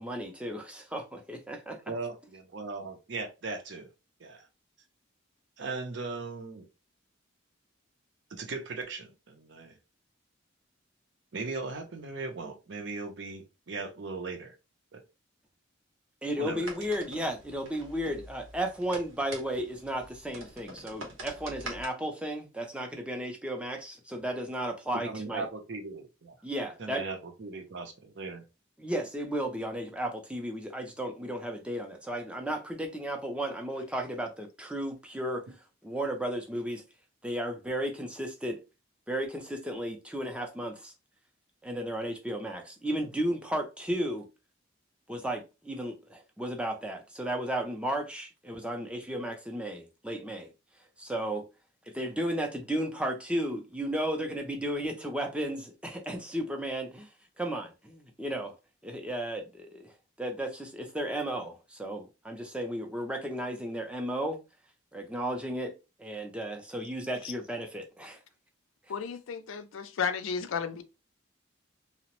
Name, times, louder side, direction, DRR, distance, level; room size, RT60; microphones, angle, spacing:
voice 1, 0.0-1.8 16.2-25.5 26.4-27.0 28.8-36.8 37.2-38.6 39.1-40.9 41.6-44.2 45.1-50.5 51.0-51.4 51.9-57.1 57.4-58.5 58.8-59.9 60.2-64.4 64.9-65.7 66.0-68.2, right 1 dB, 5° right, 0.4 m, -34 dB
voice 2, 1.9-3.9 4.2-4.5 5.6-6.7 8.3-9.8 11.3-14.5 14.9-15.0 16.4-16.7 25.0-26.4 26.8-28.4, right 3 dB, 60° right, 0.6 m, -38 dB
sound 1, 16.6-21.9, right 2 dB, 90° right, 1.0 m, -45 dB
voice 3, 68.9-70.8, left 6 dB, 85° left, 0.4 m, -33 dB
2.8 x 2.0 x 2.9 m
head